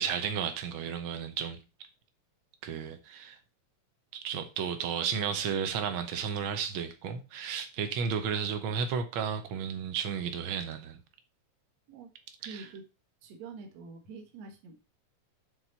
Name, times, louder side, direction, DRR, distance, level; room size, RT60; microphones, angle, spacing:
voice 1, 0.0-1.6 2.6-3.4 4.1-11.0 12.4-12.7, right 7 dB, 80° right, 1.1 m, -33 dB
voice 2, 12.4-12.8 13.2-14.8, right 4 dB, 60° right, 2.5 m, -46 dB
7.4 x 4.1 x 5.4 m
omnidirectional pair, 3.5 m